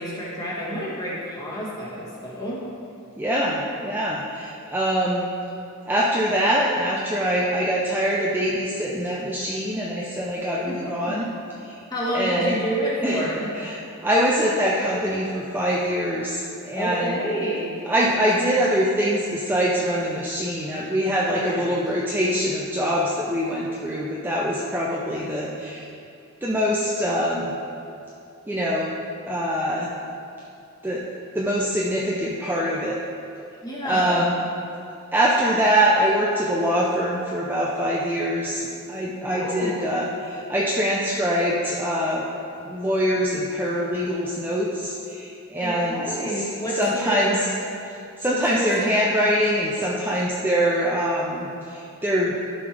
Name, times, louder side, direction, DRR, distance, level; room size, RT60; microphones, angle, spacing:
voice 1, 0.0-2.6 10.7-10.8 11.0-11.1 11.9-13.5 16.7-17.7 21.4-21.7 33.6-34.2 39.3-39.8 45.6-47.5 48.3-48.7, equal, 15° left, -6 dB, 1.7 m, -29 dB
voice 2, 3.2-5.3 5.9-11.2 11.6-11.8 12.1-12.6 13.0-13.2 13.5-17.2 17.9-25.9 26.4-27.6 28.5-28.9 29.3-29.9 30.8-31.0 31.3-33.0 33.8-34.4 35.1-42.3 42.6-46.4 46.7-47.4 48.2-52.4, equal, 10° right, -5 dB, 0.5 m, -24 dB
12.0 x 5.5 x 3.4 m, 2.7 s
head